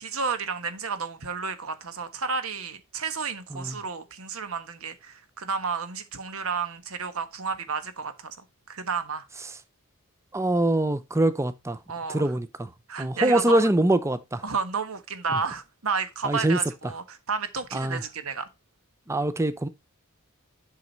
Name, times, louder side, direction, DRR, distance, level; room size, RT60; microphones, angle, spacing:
voice 1, 0.0-8.4 8.7-9.2 11.9-12.3 12.9-13.7 14.4-18.5, right 5 dB, 65° right, 1.3 m, -31 dB
voice 2, 10.3-11.8 12.1-12.7 13.0-14.4 16.2-16.6 17.7-18.0 19.1-19.7, right 1 dB, 15° right, 0.6 m, -24 dB
7.6 x 6.2 x 4.0 m
head